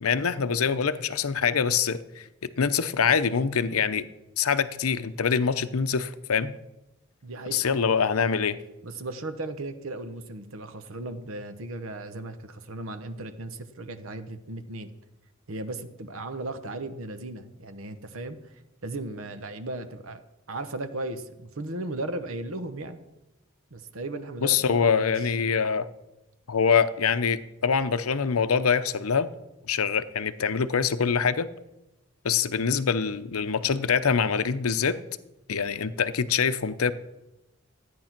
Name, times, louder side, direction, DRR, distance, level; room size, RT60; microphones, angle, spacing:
voice 1, 0.0-2.2 2.6-4.1 4.4-6.5 7.5-8.6 24.4-25.9 26.5-29.3 29.7-31.5 32.2-35.0 35.5-36.9, left 6 dB, 85° left, 0.7 m, -24 dB
voice 2, 7.2-7.6 8.8-14.9 15.5-18.4 18.8-20.2 20.5-23.0 23.7-25.3, right 2 dB, 70° right, 1.0 m, -36 dB
13.5 x 9.5 x 5.9 m
head